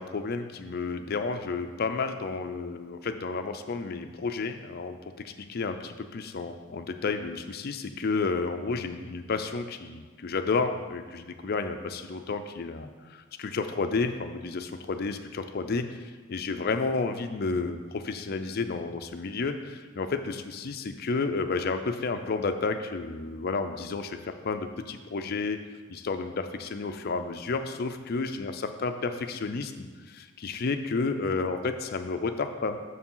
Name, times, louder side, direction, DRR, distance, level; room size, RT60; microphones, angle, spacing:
voice 1, 0.0-15.9 16.3-25.6 25.9-32.8, left 4 dB, 50° left, 8 dB, 0.4 m, -31 dB
6.5 x 4.7 x 5.5 m, 1.4 s
head